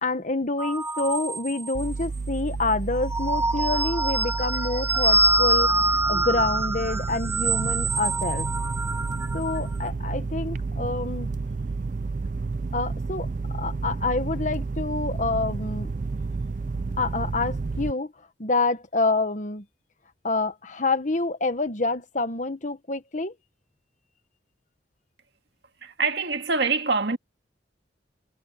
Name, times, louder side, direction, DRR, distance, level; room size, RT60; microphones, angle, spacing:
voice 1, 0.0-8.5 9.3-11.3 12.7-15.9 17.0-18.1 18.4-19.6 20.2-23.3, left 3 dB, 45° left, 1.4 m, -27 dB
sound 1, 0.6-2.0 2.9-9.6, right 2 dB, 15° right, 0.7 m, -25 dB
sound 2, 1.7-17.9, right 3 dB, 45° right, 0.4 m, -31 dB
voice 2, 25.8-27.2, right 4 dB, 70° right, 1.9 m, -25 dB
head